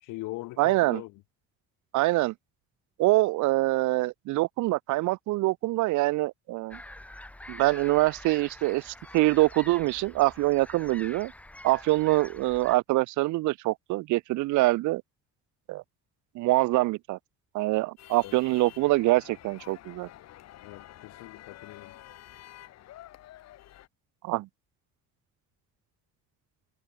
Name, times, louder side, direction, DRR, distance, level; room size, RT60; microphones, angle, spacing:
voice 1, 0.0-1.2 18.2-18.3 20.6-21.9, left 20 dB, 85° left, 1.2 m, -41 dB
voice 2, 0.6-1.0 1.9-2.3 3.0-6.8 7.5-11.3 11.6-15.0 15.7-15.8 16.3-17.2 17.5-20.1 24.2-24.5, right 19 dB, 70° right, 0.6 m, -25 dB
sound 1, 6.7-12.8, left 1 dB, 5° left, 1.6 m, -46 dB
sound 2, 18.0-23.9, left 13 dB, 55° left, 2.0 m, -49 dB
cardioid pair, 160°, 31 cm